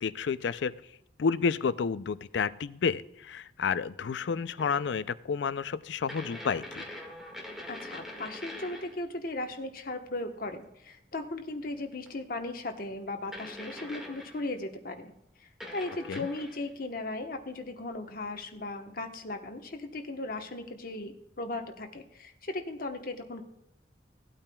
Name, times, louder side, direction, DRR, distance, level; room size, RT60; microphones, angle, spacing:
voice 1, 0.0-0.7 1.2-6.8 16.1-16.3, left 5 dB, 65° left, 16 dB, 0.4 m, -30 dB
sound 1, 4.6-5.0 6.1-9.1 12.1-12.2 13.3-14.5 15.6-16.7, left 1 dB, ahead, 1.7 m, -43 dB
voice 2, 7.7-15.1 15.4-23.4, left 2 dB, 50° left, 5 dB, 1.1 m, -37 dB
17.5 x 8.8 x 2.3 m, 0.82 s
head